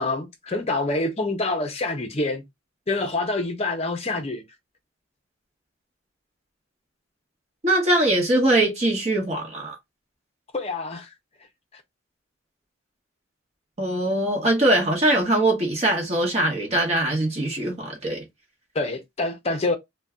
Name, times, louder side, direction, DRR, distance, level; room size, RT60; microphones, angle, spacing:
voice 1, 0.0-2.4 2.9-4.4 10.5-11.1 11.7-11.8 18.7-19.8, left 2 dB, 30° left, 0.6 m, -26 dB
voice 2, 7.6-9.8 13.8-18.2, right 1 dB, 30° right, 0.9 m, -22 dB
2.6 x 2.2 x 3.4 m
head